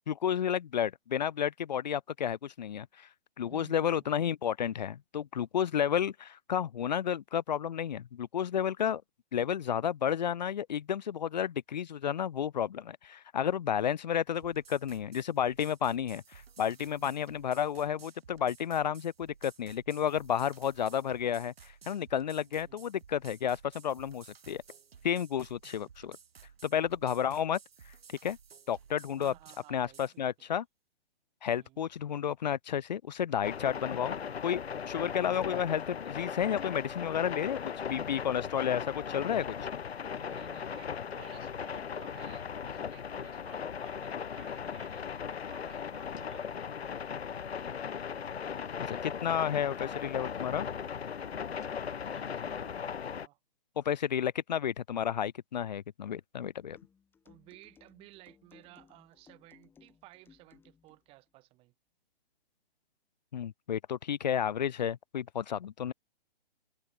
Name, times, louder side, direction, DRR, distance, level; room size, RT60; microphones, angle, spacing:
voice 1, 0.1-3.1 3.4-9.0 9.3-24.6 25.0-26.2 26.6-27.6 28.2-28.4 28.7-29.3 29.7-30.6 31.4-34.2 34.4-39.6 48.9-50.7 53.8-56.8 63.3-65.9, left 9 dB, 45° left, 0.5 m, -31 dB
voice 2, 3.5-4.2 17.0-17.2 22.4-22.9 29.2-30.5 31.6-31.9 40.1-46.9 52.1-53.4 57.2-61.7, right 20 dB, 20° right, 5.6 m, -56 dB
sound 1, 14.3-30.2, right 7 dB, 70° right, 2.7 m, -56 dB
sound 2, 33.4-53.3, left 7 dB, 85° left, 1.3 m, -38 dB
sound 3, 56.8-61.0, left 6 dB, 5° left, 3.9 m, -62 dB
hypercardioid pair, 160°, 31 cm